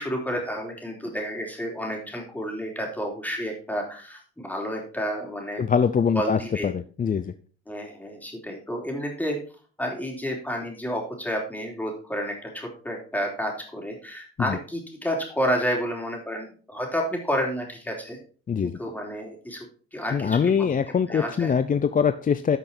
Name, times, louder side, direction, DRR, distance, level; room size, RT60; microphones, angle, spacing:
voice 1, 0.0-5.7 6.1-6.7 7.7-9.4 9.8-18.2 18.6-19.7 19.9-20.8 21.0-21.5, equal, 5° left, 0 dB, 3.7 m, -30 dB
voice 2, 5.6-6.4 6.6-7.3 14.5-14.6 18.5-18.7 20.1-22.6, left 7 dB, 30° left, 11 dB, 0.5 m, -23 dB
12.0 x 6.1 x 4.4 m, 0.39 s
cardioid pair, 120°, 29 cm